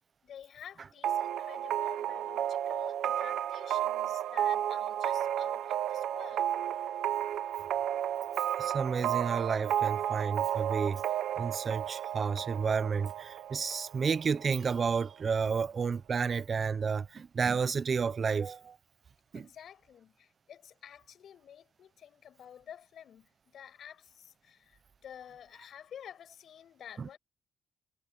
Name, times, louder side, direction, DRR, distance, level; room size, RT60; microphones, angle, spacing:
voice 1, 0.2-6.5 19.3-27.2, left 9 dB, 65° left, 7.8 m, -50 dB
sound 1, 1.0-14.5, right 11 dB, 75° right, 1.3 m, -32 dB
voice 2, 8.6-11.0 11.4-18.8 19.3-19.5, right 5 dB, 45° right, 0.9 m, -31 dB
cardioid pair, 90°, 0 cm